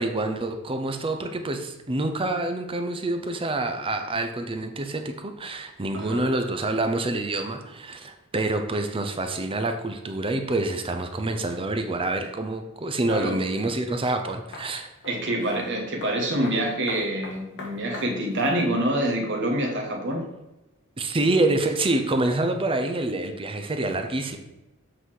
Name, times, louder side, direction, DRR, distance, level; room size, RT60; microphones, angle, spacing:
voice 1, 0.0-14.9 21.0-24.4, right 2 dB, 25° right, 6 dB, 0.6 m, -27 dB
voice 2, 5.9-6.3 13.0-13.4 15.0-20.3, right 1 dB, 55° right, 2 dB, 1.4 m, -26 dB
sound 1, 14.5-14.7 15.0-15.2 15.5-15.7 16.0-16.2 16.4-18.6 18.9-19.0, left 3 dB, 50° left, 1.4 m, -40 dB
7.9 x 4.1 x 4.7 m, 0.99 s
head